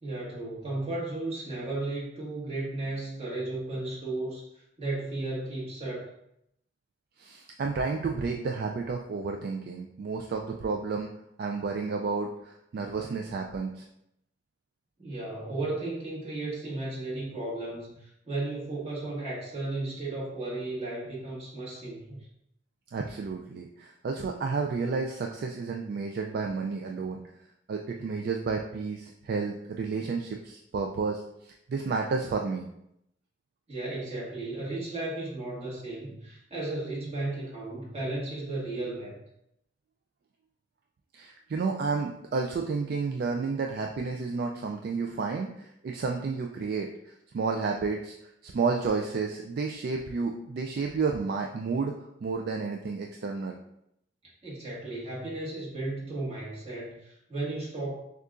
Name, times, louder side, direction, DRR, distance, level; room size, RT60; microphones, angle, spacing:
voice 1, 0.0-6.1 15.0-22.3 33.7-39.2 54.4-58.0, right 2 dB, 35° right, -6 dB, 1.5 m, -34 dB
voice 2, 7.2-11.1 11.4-13.9 22.9-27.2 27.7-32.7 41.1-48.1 48.4-53.6, right 4 dB, 60° right, 2 dB, 0.3 m, -31 dB
6.5 x 2.4 x 2.4 m, 0.78 s
head